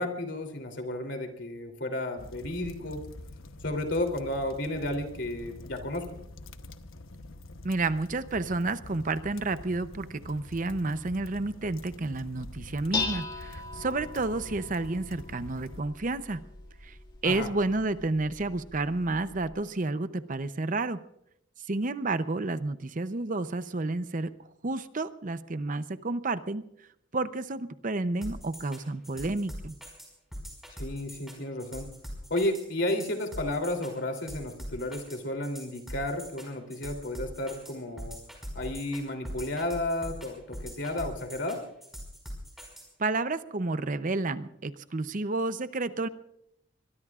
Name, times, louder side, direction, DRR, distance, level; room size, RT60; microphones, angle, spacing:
voice 1, 0.0-3.0 3.6-6.1 17.2-17.5 30.8-31.9 32.3-38.2 38.5-41.6, left 1 dB, 60° left, 5 dB, 3.2 m, -32 dB
sound 1, 2.2-15.8, left 2 dB, 90° left, 1.0 m, -46 dB
voice 2, 7.6-16.4 16.8-17.0 17.2-21.0 21.7-24.3 24.6-26.6 27.1-29.7 43.0-46.1, right 2 dB, 40° right, 12 dB, 0.7 m, -30 dB
Dishes pots and pans, 12.4-19.5, left 4 dB, 20° left, 1.9 m, -39 dB
sound 2, 28.2-42.8, equal, ahead, 5.1 m, -42 dB
24.5 x 22.0 x 2.4 m, 0.76 s
head